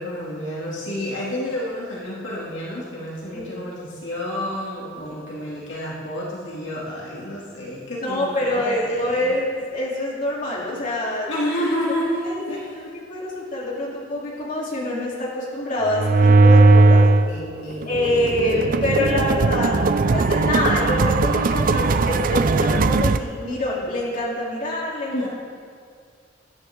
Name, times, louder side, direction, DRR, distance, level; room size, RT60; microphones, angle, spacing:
voice 1, 0.0-9.3 11.3-12.8 17.2-17.9 25.1-25.3, left 1 dB, 70° left, -6 dB, 2.8 m, -29 dB
voice 2, 8.0-11.3 12.2-17.1 17.8-19.9 20.1-25.3, left 1 dB, 45° left, -6 dB, 3.5 m, -25 dB
sound 1, 15.9-17.3 17.7-23.2, right 3 dB, 45° right, 0.5 m, -17 dB
22.5 x 11.5 x 3.8 m, 2.2 s
head